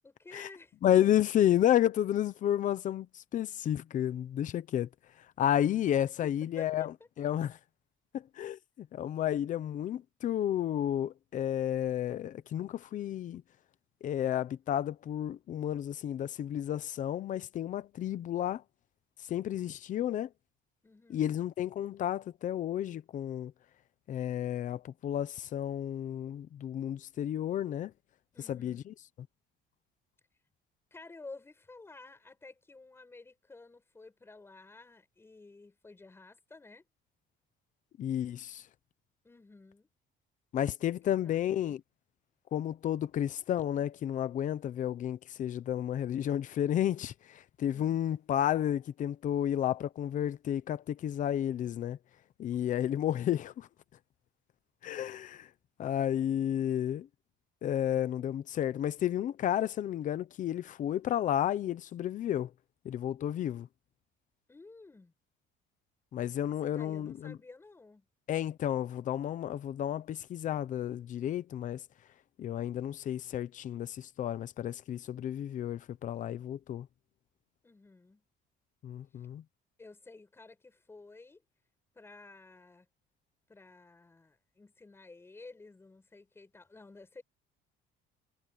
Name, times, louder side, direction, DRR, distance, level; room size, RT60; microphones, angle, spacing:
voice 1, 0.0-0.8 6.2-6.9 20.8-21.3 28.3-28.9 30.9-36.8 39.2-39.9 40.8-41.8 47.7-48.0 64.5-65.1 66.4-68.1 77.6-78.2 79.8-81.4 81.9-82.9 83.5-87.2, left 3 dB, 10° left, 6.9 m, -52 dB
voice 2, 0.8-4.9 5.4-6.9 7.2-7.6 8.4-13.4 14.0-18.6 19.3-20.3 21.1-23.5 24.1-27.9 28.5-28.9 38.0-38.6 40.5-41.8 42.5-52.0 52.4-53.7 54.8-55.5 55.8-57.1 57.6-62.5 62.8-63.7 66.1-67.4 68.3-71.8 72.4-76.9 78.8-79.4, left 11 dB, 40° left, 0.9 m, -31 dB
cardioid pair, 180°, 20 cm